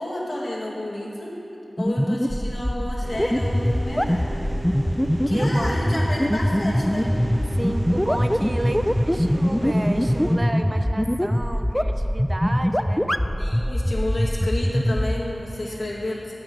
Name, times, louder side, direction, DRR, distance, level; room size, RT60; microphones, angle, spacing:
voice 1, 0.0-1.4 1.8-4.3 5.3-7.1 13.4-16.4, left 1 dB, 75° left, -5 dB, 1.9 m, -30 dB
sound 1, 1.8-15.1, equal, 10° left, 0.3 m, -22 dB
sound 2, 3.0-10.4, equal, 80° right, 1.2 m, -32 dB
voice 2, 5.3-6.1 7.6-13.1 15.6-16.0, right 1 dB, 35° right, 5 dB, 0.6 m, -32 dB
8.8 x 8.8 x 5.3 m, 2.8 s
wide cardioid pair, 60°, 0 cm